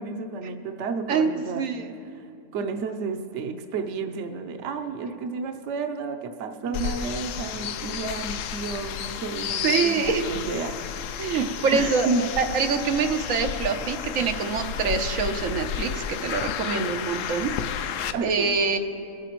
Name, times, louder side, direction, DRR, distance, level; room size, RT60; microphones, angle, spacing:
voice 1, 0.0-1.6 2.1-2.3 2.5-11.1 11.7-12.2 16.7-17.0 18.1-18.5, right 4 dB, 65° right, 6 dB, 1.0 m, -31 dB
voice 2, 1.1-1.9 9.6-10.2 11.2-18.8, right 5 dB, 85° right, 5 dB, 1.2 m, -25 dB
sound 1, 6.7-18.1, left 8 dB, 75° left, 0.9 m, -32 dB
22.5 x 9.9 x 3.0 m, 2.5 s
omnidirectional pair, 1.4 m